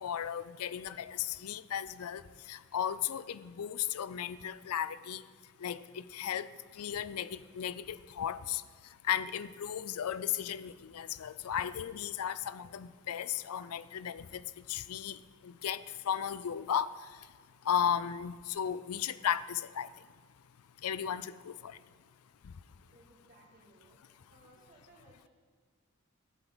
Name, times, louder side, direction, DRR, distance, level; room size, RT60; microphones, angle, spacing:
voice 1, 0.0-2.2 2.5-5.2 5.6-5.8 6.1-6.5 6.8-8.6 9.1-14.4 14.7-15.2 15.4-16.9 17.7-19.9 20.8-21.8, left 9 dB, 85° left, 15 dB, 0.5 m, -35 dB
voice 2, 2.9-3.2 21.5-21.6 22.9-24.0 24.3-25.3, right 2 dB, 40° right, -1 dB, 2.5 m, -62 dB
18.5 x 8.1 x 4.0 m, 1.5 s
head